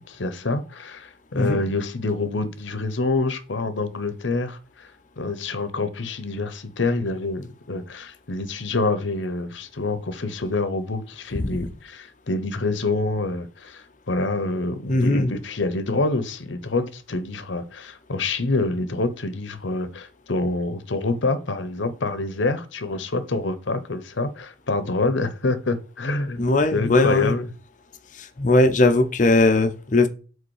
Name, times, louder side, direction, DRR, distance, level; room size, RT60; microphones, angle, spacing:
voice 1, 0.1-4.9 5.2-26.4 26.7-27.5, left 2 dB, 70° left, 0.8 m, -26 dB
voice 2, 14.9-15.3 26.4-27.3 28.2-30.1, left 2 dB, 40° left, 0.7 m, -19 dB
5.1 x 4.0 x 4.7 m
head